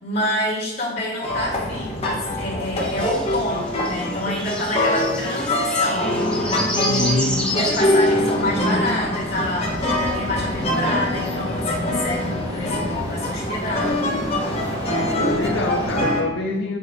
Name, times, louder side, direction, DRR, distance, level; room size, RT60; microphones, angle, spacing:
voice 1, 0.0-14.0, left 1 dB, 55° left, -5 dB, 2.5 m, -27 dB
sound 1, 1.2-16.2, left 1 dB, 30° left, 1.1 m, -24 dB
sound 2, 2.8-8.4, left 1 dB, 5° left, 1.0 m, -30 dB
voice 2, 6.7-7.4 15.2-16.8, left 2 dB, 85° left, -1 dB, 0.8 m, -25 dB
sound 3, 9.6-16.0, right 1 dB, 20° right, 0.6 m, -36 dB
7.9 x 2.8 x 6.1 m, 1.0 s
head